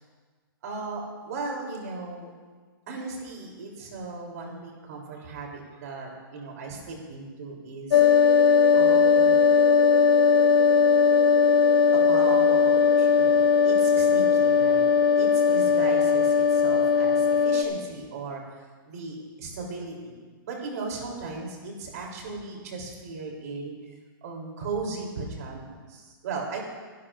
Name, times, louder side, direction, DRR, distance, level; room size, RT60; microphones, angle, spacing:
voice 1, 0.6-2.3 2.9-8.0 8.7-9.4 11.9-14.9 15.2-18.6 18.8-23.7 24.2-26.6, right 3 dB, 45° right, -1 dB, 3.2 m, -37 dB
sound 1, 7.9-17.6, left 6 dB, 70° left, 0.9 m, -19 dB
21.0 x 11.5 x 2.5 m, 1.4 s
hypercardioid pair, 175°, 12 cm